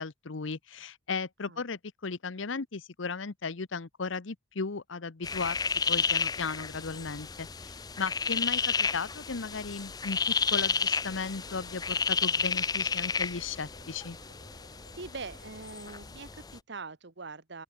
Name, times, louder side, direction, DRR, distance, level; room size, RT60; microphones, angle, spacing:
voice 1, 0.0-5.6 5.9-10.2 10.5-14.2, left 4 dB, 70° left, 0.9 m, -36 dB
sound 1, 5.2-16.6, left 5 dB, 20° left, 0.5 m, -31 dB
sound 2, 10.6-15.7, right 2 dB, 45° right, 1.8 m, -57 dB
voice 2, 15.0-17.6, right 4 dB, 60° right, 1.3 m, -43 dB
open air
head